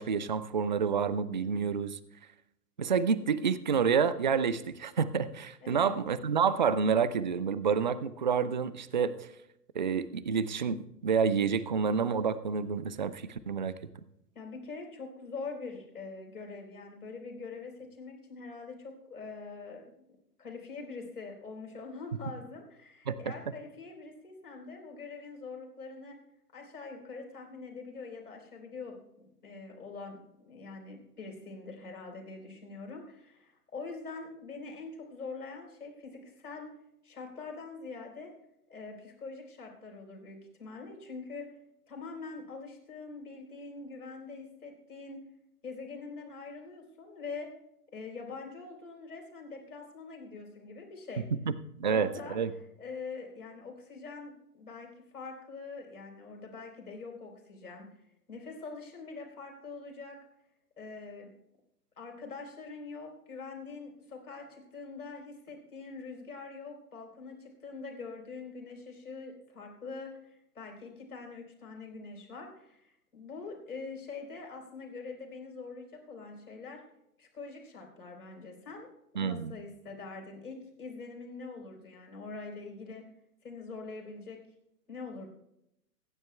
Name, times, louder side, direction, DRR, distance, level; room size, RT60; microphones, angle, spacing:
voice 1, 0.0-2.0 2.8-9.3 9.7-13.8 23.1-23.2 51.5-52.5 79.2-79.5, right 6 dB, 35° right, 16 dB, 0.4 m, -29 dB
voice 2, 5.6-6.0 14.3-20.0 20.4-26.2 26.5-36.7 37.0-38.3 38.7-41.5 41.9-45.3 45.6-47.5 47.9-51.3 51.8-52.4 52.8-57.9 58.3-60.2 60.8-61.3 62.0-76.8 77.2-78.9 79.1-83.0 83.4-84.4 84.9-85.3, left 4 dB, 65° left, 1 dB, 3.9 m, -44 dB
24.0 x 10.5 x 2.2 m, 0.82 s
figure-of-eight pair, 120°, 47 cm